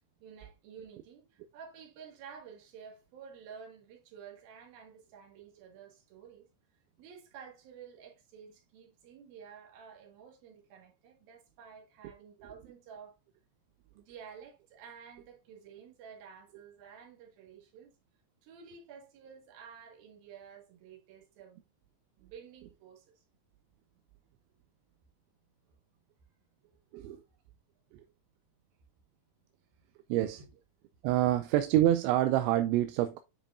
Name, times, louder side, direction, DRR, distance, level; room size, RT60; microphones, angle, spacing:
voice 1, 0.2-6.5 7.0-13.2 13.9-17.9 18.4-21.6 22.2-23.2 25.7-25.8 26.6-26.8 27.1-27.4 30.4-30.5, right 7 dB, 55° right, 3.2 m, -52 dB
voice 2, 30.1-30.4 31.0-33.2, right 13 dB, 85° right, 2.7 m, -27 dB
10.0 x 5.0 x 2.6 m
omnidirectional pair, 5.7 m